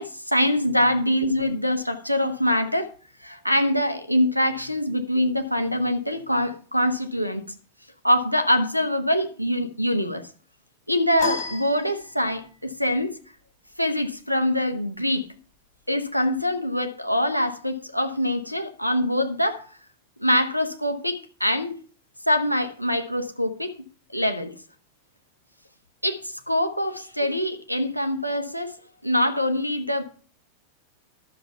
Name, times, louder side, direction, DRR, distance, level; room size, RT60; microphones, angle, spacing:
voice 1, 0.0-2.9 3.2-7.4 8.0-10.3 10.9-13.1 13.8-15.3 15.9-19.7 20.2-21.8 22.3-23.7 24.1-24.5 26.0-28.8 29.0-30.0, left 1 dB, 90° left, 1.2 m, -24 dB
sound 1, 11.2-12.6, left 5 dB, 40° left, 4.1 m, -31 dB
12.0 x 7.0 x 5.7 m
figure-of-eight pair, 90°, 0 cm